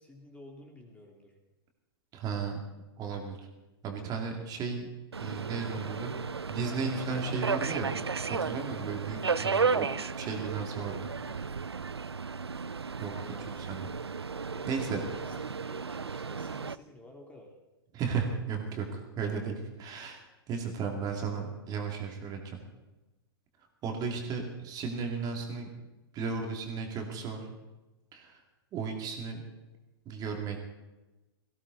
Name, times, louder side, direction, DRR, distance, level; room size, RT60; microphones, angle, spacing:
voice 1, 0.0-1.4 13.1-14.0 14.5-17.5, left 1 dB, 10° left, 1 dB, 2.8 m, -52 dB
voice 2, 2.1-2.6 3.0-3.4 3.8-4.9 5.2-6.1 6.5-7.9 8.3-9.9 10.2-11.5 13.0-13.1 13.7-13.9 14.7-15.0 17.9-22.6 23.8-25.7 26.1-27.5 28.1-28.4 28.7-29.4 30.1-30.6, right 5 dB, 30° right, 2 dB, 2.6 m, -35 dB
Subway metro underground, 5.1-16.8, right 5 dB, 90° right, 0.5 m, -34 dB
18.5 x 16.0 x 4.1 m, 1.1 s
figure-of-eight pair, 105°, 13 cm